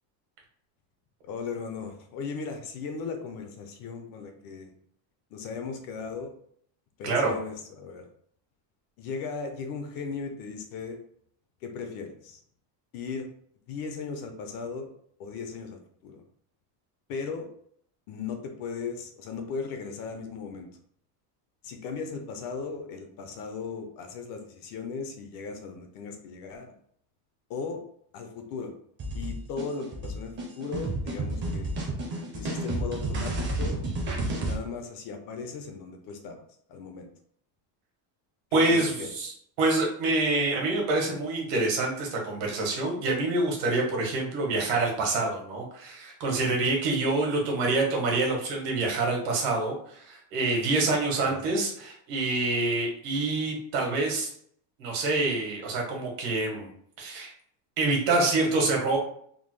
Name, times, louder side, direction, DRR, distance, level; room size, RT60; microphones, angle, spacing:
voice 1, 1.2-4.7 5.3-6.3 7.0-8.1 9.0-11.0 11.6-12.4 12.9-13.3 13.7-14.9 15.2-16.2 17.1-17.5 18.1-20.7 21.6-26.7 27.5-27.8 28.1-28.7 29.1-31.8 32.3-33.8 34.1-36.4 36.7-37.1 38.5-39.1 51.2-51.4, left 5 dB, 45° left, 5 dB, 0.5 m, -37 dB
sound 1, 29.0-34.6, right 2 dB, 25° right, 0.5 m, -31 dB
voice 2, 38.5-39.3 39.6-54.3 54.8-56.7 57.0-57.3 57.8-59.0, right 2 dB, 80° right, 0 dB, 1.5 m, -26 dB
3.6 x 2.2 x 3.1 m, 0.64 s
cardioid pair, 165°, 50 cm